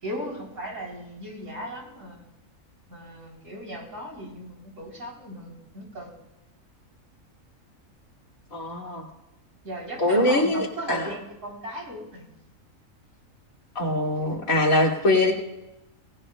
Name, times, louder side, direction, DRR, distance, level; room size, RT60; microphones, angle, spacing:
voice 1, 0.0-2.2 2.9-6.1 9.6-12.3, equal, 70° right, -1 dB, 3.8 m, -37 dB
voice 2, 8.5-9.0 10.0-11.1 13.7-15.3, left 1 dB, 80° left, -2 dB, 2.8 m, -23 dB
25.0 x 18.5 x 2.2 m, 0.96 s
omnidirectional pair, 1.4 m